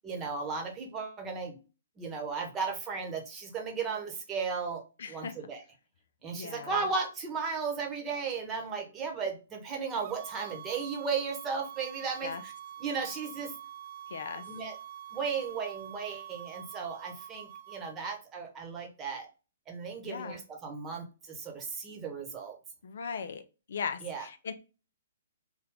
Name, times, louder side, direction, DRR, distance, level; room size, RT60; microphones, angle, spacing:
voice 1, 0.0-1.6 2.0-4.8 5.1-5.6 6.2-12.5 12.8-13.5 14.5-14.7 15.1-19.3 19.7-22.6 24.0-24.2, right 5 dB, 20° right, 2 dB, 1.0 m, -35 dB
voice 2, 5.0-5.3 6.3-6.8 12.2-12.4 14.1-14.4 20.1-20.4 22.8-23.4 23.7-24.5, left 6 dB, 60° left, 10 dB, 0.4 m, -38 dB
sound 1, 10.0-18.1, right 10 dB, 40° right, 0.4 m, -46 dB
3.4 x 2.2 x 3.6 m, 0.32 s
figure-of-eight pair, 125°, 0 cm